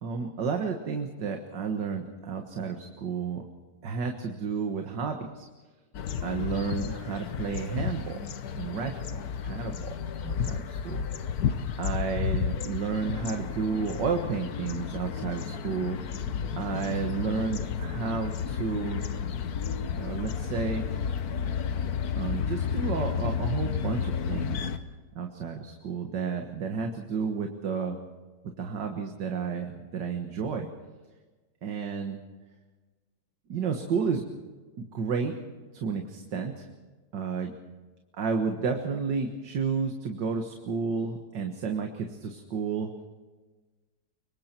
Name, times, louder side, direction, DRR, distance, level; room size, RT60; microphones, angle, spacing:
voice 1, 0.0-3.4 3.8-5.5 6.2-8.3 8.5-9.1 9.4-9.9 10.2-11.1 11.8-16.3 16.6-19.0 19.9-20.9 22.2-24.7 25.2-28.0 28.6-30.7 31.6-32.2 33.5-34.2 34.8-35.4 35.7-36.7 37.1-37.5 38.2-42.9, right 5 dB, 80° right, 4 dB, 2.1 m, -31 dB
sound 1, 5.9-24.8, left 7 dB, 60° left, 1.4 m, -32 dB
25.5 x 23.5 x 4.5 m, 1.3 s
omnidirectional pair, 1.9 m